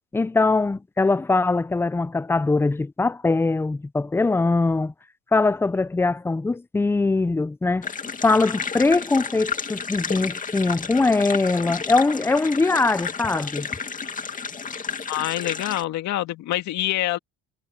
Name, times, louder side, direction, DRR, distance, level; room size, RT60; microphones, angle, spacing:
voice 1, 0.1-4.9 5.3-7.9 8.2-13.7, left 3 dB, 10° left, 0.5 m, -22 dB
sound 1, 7.8-15.8, left 5 dB, 25° left, 2.3 m, -32 dB
voice 2, 15.1-17.2, left 14 dB, 65° left, 2.0 m, -26 dB
cardioid pair, 110°, 30 cm